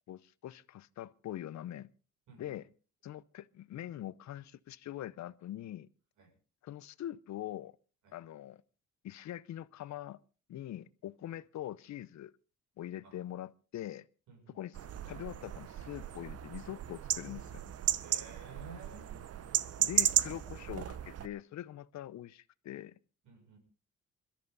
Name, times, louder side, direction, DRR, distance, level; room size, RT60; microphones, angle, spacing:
voice 1, 0.1-1.9 2.4-2.7 3.0-5.9 6.6-7.8 8.1-8.6 9.0-10.2 10.5-12.3 12.8-14.1 14.5-14.8 15.1-17.6 19.8-23.0, left 12 dB, 65° left, 0.8 m, -43 dB
voice 2, 2.3-2.6 6.2-6.3 8.0-8.2 13.0-13.2 14.3-14.6 18.0-19.2 23.2-23.6, right 4 dB, 75° right, 7.2 m, -53 dB
sound 1, 14.7-21.3, right 10 dB, 55° right, 0.9 m, -34 dB
21.5 x 13.5 x 4.1 m
cardioid pair, 90°, 30 cm